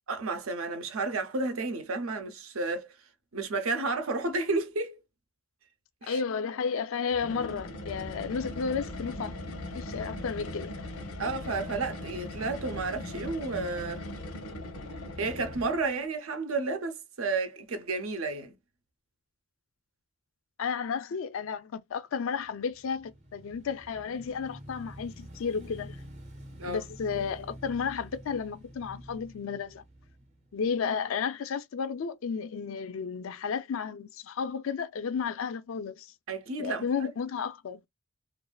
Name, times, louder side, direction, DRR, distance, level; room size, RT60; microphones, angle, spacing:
voice 1, 0.1-2.9 3.3-5.0 6.0-6.2 11.2-14.0 15.2-18.6 26.6-26.8 36.3-37.1, right 3 dB, 70° right, 0.6 m, -32 dB
voice 2, 6.0-9.4 9.7-10.7 20.6-26.0 26.7-29.8 30.5-36.1 36.6-37.8, left 6 dB, 65° left, 0.4 m, -33 dB
sound 1, 7.1-15.9, left 1 dB, 85° left, 0.8 m, -39 dB
Motorcycle / Engine, 22.5-31.0, equal, 30° right, 0.7 m, -48 dB
2.4 x 2.4 x 2.2 m
head